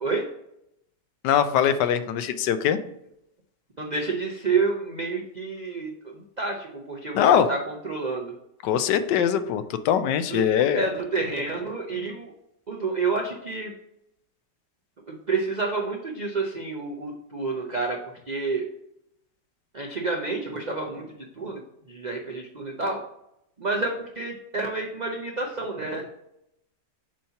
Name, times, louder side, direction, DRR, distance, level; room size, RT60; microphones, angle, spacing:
voice 1, 1.2-2.8 7.1-7.5 8.6-10.9, left 9 dB, 80° left, 10 dB, 1.2 m, -22 dB
voice 2, 3.8-8.3 10.3-10.4 10.7-12.3 12.7-13.7 15.1-18.6 19.7-21.6 21.9-23.0 23.6-26.0, right 3 dB, 60° right, 0 dB, 0.4 m, -29 dB
7.5 x 2.8 x 5.6 m, 0.80 s
omnidirectional pair, 1.8 m